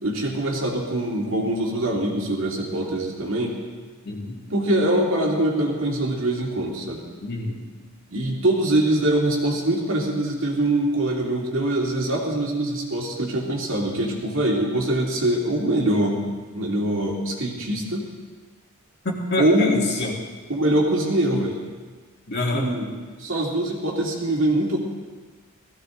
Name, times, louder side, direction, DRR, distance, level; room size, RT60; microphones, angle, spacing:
voice 1, 0.0-3.6 4.5-7.0 8.1-16.2 16.5-18.1 19.4-19.7 20.5-21.6 22.5-22.9 23.2-24.8, right 1 dB, 60° right, -1 dB, 2.6 m, -23 dB
voice 2, 4.0-4.4 7.2-7.6 19.0-20.2 22.3-22.7, left 2 dB, 50° left, -1 dB, 2.2 m, -26 dB
18.0 x 15.0 x 3.9 m, 1.4 s
head